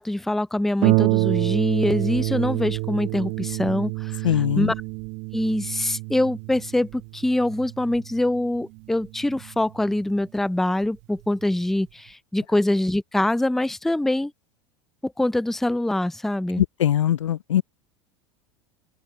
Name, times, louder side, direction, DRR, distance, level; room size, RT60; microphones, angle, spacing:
voice 1, 0.0-4.3 4.6-4.7 5.3-14.3 15.0-16.6, left 1 dB, ahead, 0.4 m, -24 dB
Harp, 0.8-10.0 10.8-10.9 11.4-11.5, right 30 dB, 55° right, 0.8 m, -27 dB
voice 2, 4.2-4.7 16.6-17.6, left 11 dB, 80° left, 0.5 m, -21 dB
open air
hypercardioid pair, 85°, 15 cm